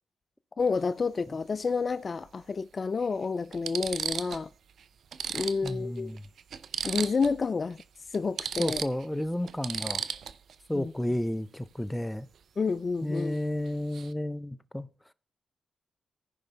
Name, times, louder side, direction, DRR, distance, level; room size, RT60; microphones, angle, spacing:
voice 1, 0.6-4.5 5.3-6.1 6.8-7.8 8.1-8.8 10.7-10.9 12.6-13.4, left 4 dB, 50° left, 0.3 m, -29 dB
sound 1, 0.6-0.8 2.3-2.4 3.0-3.1 3.5-4.5 4.8-4.9 5.1-7.4 7.7-7.8 8.1-10.6 13.2-13.4 13.7-14.1, right 7 dB, 70° right, 0.5 m, -35 dB
voice 2, 5.6-6.2 8.6-10.0 10.7-12.3 13.0-14.9, left 1 dB, 10° left, 0.7 m, -32 dB
14.5 x 5.3 x 3.4 m
supercardioid pair, 45°, 0 cm